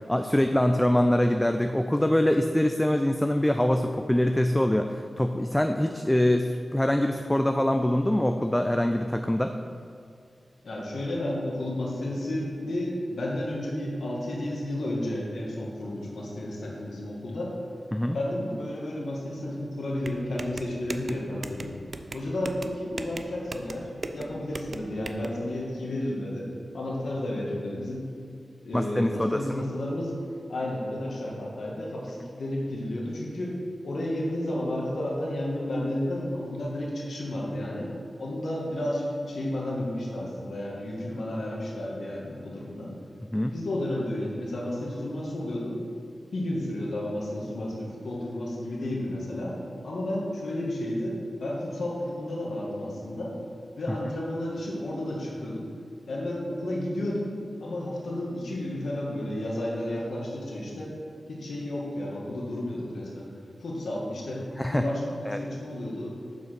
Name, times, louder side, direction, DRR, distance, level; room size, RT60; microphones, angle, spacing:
voice 1, 0.0-9.5 17.9-18.2 28.7-29.6 43.3-43.5 64.6-64.8 65.3-65.4, left 1 dB, 10° left, 6 dB, 0.4 m, -24 dB
voice 2, 10.6-17.5 18.1-21.7 22.1-26.5 26.7-28.1 28.6-30.2 30.5-33.6 33.8-37.9 38.2-42.9 43.5-45.8 46.3-49.5 49.8-53.3 53.8-55.7 56.1-57.3 57.6-60.9 61.3-63.3 63.6-64.4 64.7-66.1, left 1 dB, 80° left, -3 dB, 1.9 m, -32 dB
sound 1, 20.0-25.3, right 3 dB, 55° right, 0.5 m, -39 dB
7.6 x 5.9 x 5.8 m, 2.3 s
cardioid pair, 50°, 0 cm